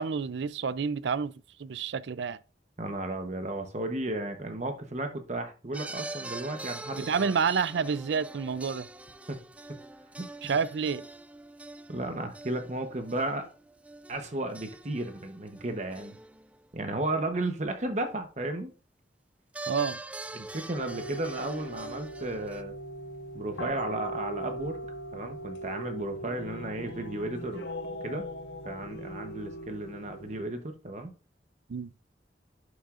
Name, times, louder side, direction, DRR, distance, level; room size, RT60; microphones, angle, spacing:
voice 1, 0.0-1.3 1.6-2.4 7.0-8.9 10.4-11.1 19.7-20.0 31.7-31.9, right 6 dB, 75° right, 0.4 m, -29 dB
voice 2, 2.8-7.3 9.3-9.4 10.2-10.6 11.9-13.5 14.1-16.2 16.7-18.7 20.3-22.7 23.3-24.8 25.1-27.7 28.0-28.3 28.6-31.1, right 2 dB, 40° right, 0.9 m, -34 dB
sound 1, 5.7-16.6 19.5-22.6, right 2 dB, 10° right, 0.3 m, -44 dB
sound 2, 20.8-30.4, equal, 75° left, 1.4 m, -39 dB
11.0 x 6.5 x 2.5 m
head